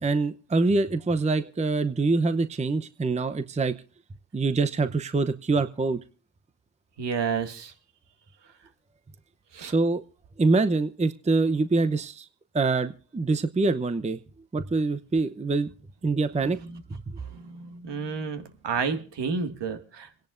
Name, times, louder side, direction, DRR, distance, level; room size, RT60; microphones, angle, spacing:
voice 1, 0.0-3.7 4.3-6.0 9.6-10.0 10.4-12.3 12.5-14.2 14.5-15.7 16.0-16.6 16.9-17.2, right 3 dB, 15° right, 11 dB, 0.8 m, -25 dB
voice 2, 7.0-7.7 9.5-9.7 17.7-20.1, right 5 dB, 60° right, 8 dB, 2.1 m, -30 dB
27.5 x 10.5 x 2.6 m, 0.39 s
supercardioid pair, 70°, 48 cm